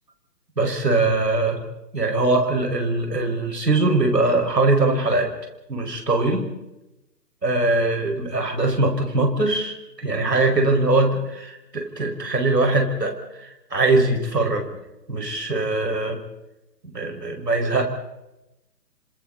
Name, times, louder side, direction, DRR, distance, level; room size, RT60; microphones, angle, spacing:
voice 1, 0.6-1.6 1.9-5.3 5.7-6.4 7.4-14.7 15.1-16.2 16.9-17.8, right 2 dB, 75° right, 3 dB, 5.4 m, -21 dB
29.5 x 26.0 x 4.1 m, 0.95 s
figure-of-eight pair, 135°, 49 cm